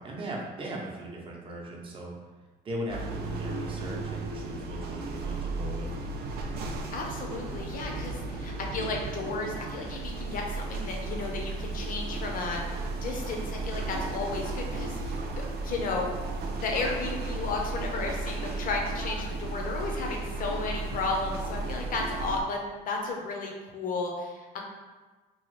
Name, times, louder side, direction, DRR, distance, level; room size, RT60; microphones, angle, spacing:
voice 1, 0.0-2.1 2.6-6.0, right 1 dB, 30° right, -2 dB, 0.7 m, -38 dB
sound 1, 2.9-22.4, right 3 dB, 70° right, 0.4 m, -34 dB
voice 2, 6.9-16.1 16.6-22.6 22.8-24.6, left 3 dB, 55° left, 1 dB, 0.7 m, -33 dB
3.0 x 2.3 x 3.1 m, 1.3 s
cardioid pair, 110°, 17 cm